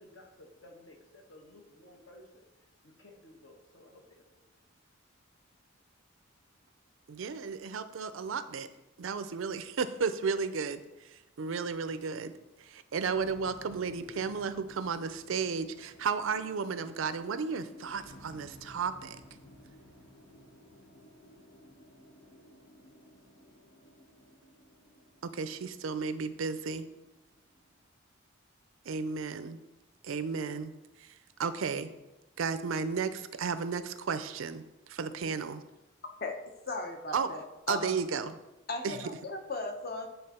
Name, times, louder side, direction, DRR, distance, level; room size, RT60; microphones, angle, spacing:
voice 1, 0.0-4.6, left 1 dB, 65° left, 1 dB, 1.2 m, -56 dB
voice 2, 7.1-8.7 9.0-10.8 11.1-12.3 12.6-19.2 25.3-26.9 28.9-29.6 30.0-30.7 31.0-31.1 31.4-31.9 32.4-34.6 34.9-35.6 37.1-37.3 37.7-38.4 38.8-39.0, right 5 dB, 75° right, 12 dB, 0.4 m, -33 dB
sound 1, 13.0-27.9, left 1 dB, 90° left, 1.2 m, -56 dB
voice 3, 36.7-37.9 38.7-40.1, left 3 dB, 45° left, 3 dB, 0.8 m, -37 dB
8.7 x 3.5 x 4.2 m, 0.99 s
head